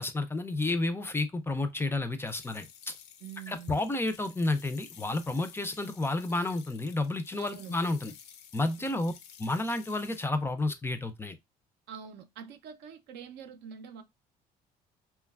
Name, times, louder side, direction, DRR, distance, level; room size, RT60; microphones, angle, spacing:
voice 1, 0.0-2.7 3.5-8.1 8.5-9.1 9.4-11.4, left 2 dB, 15° left, 0.3 m, -31 dB
sound 1, 2.3-10.3, left 8 dB, 80° left, 0.5 m, -52 dB
voice 2, 3.2-3.8 7.4-7.8 8.8-9.2 11.9-14.0, right 7 dB, 80° right, 0.5 m, -45 dB
3.0 x 2.3 x 2.2 m
cardioid pair, 110°, 17 cm